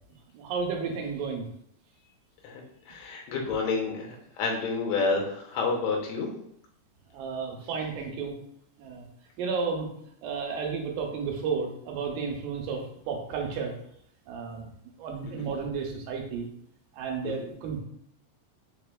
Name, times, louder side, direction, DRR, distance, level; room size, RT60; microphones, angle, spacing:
voice 1, 0.3-1.5 7.1-8.3 8.8-9.1 9.4-9.9 10.2-13.7 14.3-14.7 15.0-16.5 16.9-17.8, right 5 dB, 85° right, 1 dB, 2.5 m, -32 dB
voice 2, 2.9-6.3 17.2-17.3, left 4 dB, 70° left, 0 dB, 1.8 m, -29 dB
4.7 x 4.3 x 2.3 m, 0.70 s
omnidirectional pair, 3.8 m